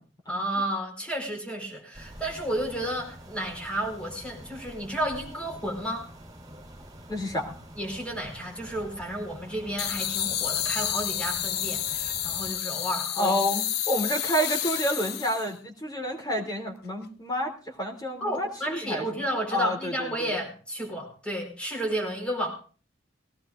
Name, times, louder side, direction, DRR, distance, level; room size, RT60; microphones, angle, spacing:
voice 1, 0.3-6.1 7.8-13.4 18.2-22.5, right 1 dB, 5° left, 1 dB, 4.7 m, -32 dB
sound 1, 1.9-12.5, right 1 dB, 20° right, 4.2 m, -46 dB
voice 2, 7.1-7.5 13.2-19.0 19.5-20.3, equal, 20° left, 2 dB, 3.1 m, -29 dB
sound 2, 9.8-15.5, left 10 dB, 55° left, 0.7 m, -30 dB
20.0 x 17.5 x 2.6 m, 0.39 s
head